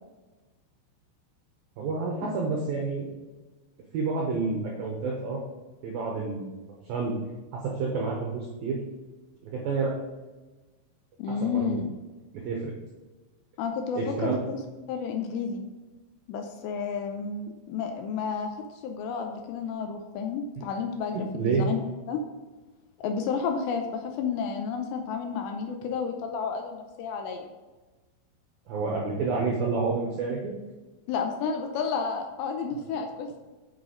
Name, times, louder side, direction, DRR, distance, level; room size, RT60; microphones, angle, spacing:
voice 1, 1.8-3.1 3.9-5.4 5.8-6.5 6.9-7.1 7.5-8.8 9.5-9.9 11.4-11.8 12.4-12.7 14.0-14.4 20.6-20.7 21.1-21.7 28.7-30.5, right 4 dB, 85° right, -2 dB, 2.0 m, -29 dB
voice 2, 11.2-11.8 13.6-14.6 14.9-15.6 16.3-18.5 18.8-22.2 23.0-27.5 31.1-33.4, left 6 dB, 90° left, 4 dB, 2.4 m, -31 dB
8.1 x 6.1 x 3.9 m, 1.2 s
omnidirectional pair, 5.9 m